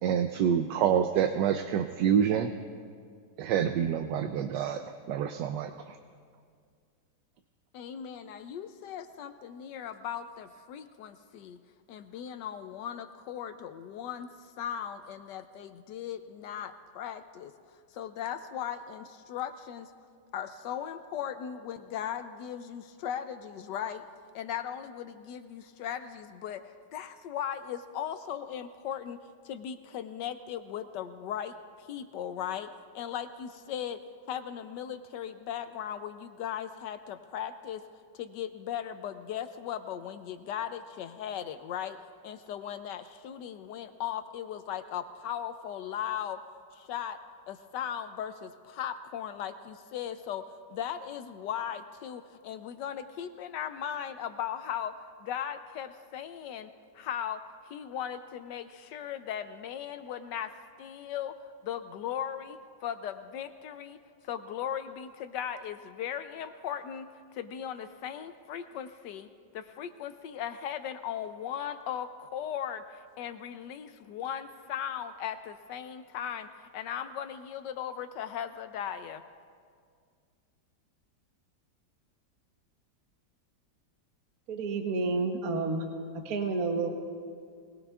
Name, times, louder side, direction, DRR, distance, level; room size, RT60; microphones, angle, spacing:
voice 1, 0.0-2.5 3.4-4.8 5.1-6.0, right 8 dB, 75° right, 7 dB, 1.1 m, -27 dB
voice 2, 7.7-11.6 11.9-17.5 17.9-19.9 20.3-24.0 24.3-29.2 29.4-32.7 32.9-34.0 34.3-37.8 38.1-42.0 42.2-46.4 46.7-47.2 47.5-54.9 55.2-60.5 60.8-61.3 61.6-64.0 64.2-69.3 69.5-79.2, left 9 dB, 75° left, 10 dB, 1.1 m, -38 dB
voice 3, 84.5-85.9 86.1-86.9, right 3 dB, 55° right, 3 dB, 1.4 m, -30 dB
21.5 x 19.5 x 2.4 m, 2.1 s
omnidirectional pair, 2.1 m